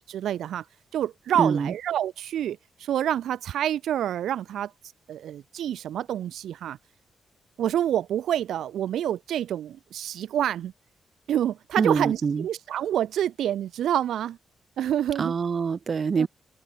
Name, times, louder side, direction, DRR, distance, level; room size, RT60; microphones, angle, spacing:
voice 1, 0.1-0.7 0.9-4.7 5.1-6.8 7.6-10.7 11.3-14.4 14.8-15.3 16.2-16.3, right 11 dB, 85° right, 0.5 m, -27 dB
voice 2, 1.4-1.7 11.8-12.4 15.2-16.3, right 5 dB, 50° right, 1.0 m, -24 dB
open air
cardioid pair, 65°, 0 cm